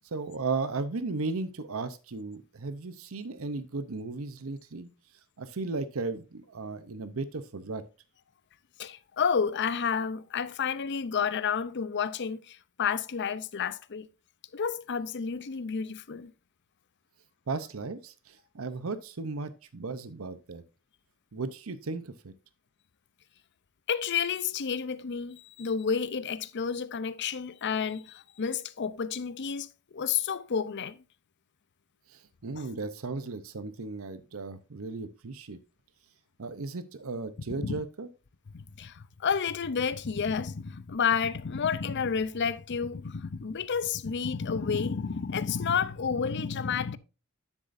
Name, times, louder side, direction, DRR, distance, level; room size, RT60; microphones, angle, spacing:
voice 1, 0.1-4.9 5.4-7.8 17.5-20.6 21.3-22.3 32.1-35.6 36.4-38.1, right 3 dB, 70° right, 0.7 m, -35 dB
voice 2, 8.8-14.1 14.5-16.3 23.9-29.7 29.9-31.0 32.6-32.7 37.6-37.8 38.5-47.0, left 6 dB, 55° left, 0.6 m, -30 dB
9.8 x 7.9 x 2.6 m
head